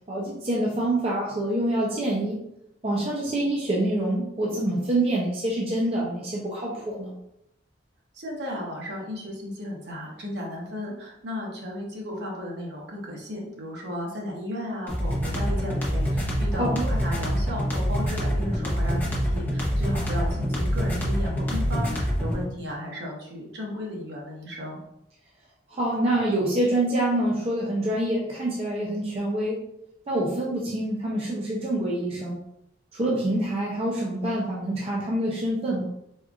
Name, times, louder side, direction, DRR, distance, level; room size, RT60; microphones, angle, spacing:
voice 1, 0.1-2.4 2.8-7.1 16.6-16.9 25.7-29.6 30.1-32.4 32.9-35.9, right 1 dB, 35° right, -4 dB, 0.5 m, -26 dB
voice 2, 8.1-24.8, left 1 dB, 65° right, -2 dB, 1.0 m, -34 dB
sound 1, 14.9-22.4, equal, 10° left, 0.7 m, -26 dB
4.3 x 2.4 x 2.4 m, 0.79 s
head